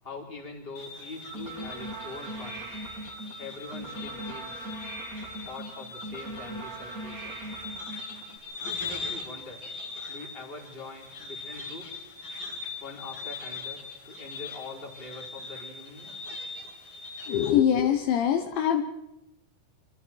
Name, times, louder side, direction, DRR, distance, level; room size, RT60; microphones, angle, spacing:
voice 1, 0.0-2.6 3.4-4.7 5.4-7.5 8.6-9.6 10.1-12.1 12.8-16.1, left 3 dB, 10° left, 0 dB, 4.1 m, -43 dB
sound 1, 0.8-17.5, left 4 dB, 45° left, 4.5 m, -41 dB
sound 2, 1.2-8.4, right 2 dB, 25° right, 2.3 m, -40 dB
voice 2, 17.3-18.8, left 9 dB, 75° left, 6 dB, 3.2 m, -23 dB
27.5 x 26.0 x 4.7 m, 0.91 s
omnidirectional pair, 5.8 m